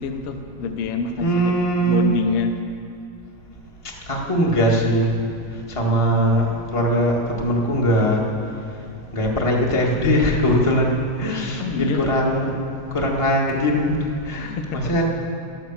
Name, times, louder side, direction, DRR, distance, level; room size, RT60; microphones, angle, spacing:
voice 1, 0.0-2.5 11.6-12.0 14.4-15.0, left 5 dB, 75° left, 6 dB, 1.3 m, -27 dB
voice 2, 1.2-2.0 4.1-5.1 5.7-8.3 9.1-12.6 12.9-15.0, equal, 35° left, -2 dB, 0.5 m, -20 dB
12.0 x 11.0 x 7.3 m, 2.5 s
omnidirectional pair, 3.7 m